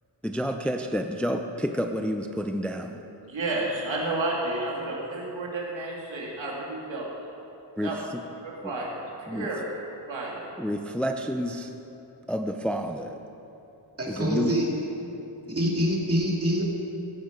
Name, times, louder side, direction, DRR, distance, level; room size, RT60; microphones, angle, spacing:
voice 1, 0.2-3.0 7.8-8.2 8.6-8.7 9.3-9.5 10.6-11.7 12.3-13.1 14.1-14.5 15.5-15.6, equal, 5° left, 5 dB, 0.5 m, -29 dB
voice 2, 3.2-7.1 7.8-8.0 8.4-8.9 9.3-9.6 10.1-10.5, right 2 dB, 75° right, -3 dB, 2.7 m, -31 dB
voice 3, 14.0-14.7 15.5-16.6, equal, 30° right, -2 dB, 2.4 m, -25 dB
16.0 x 10.5 x 5.2 m, 3.0 s
wide cardioid pair, 145°, 45 cm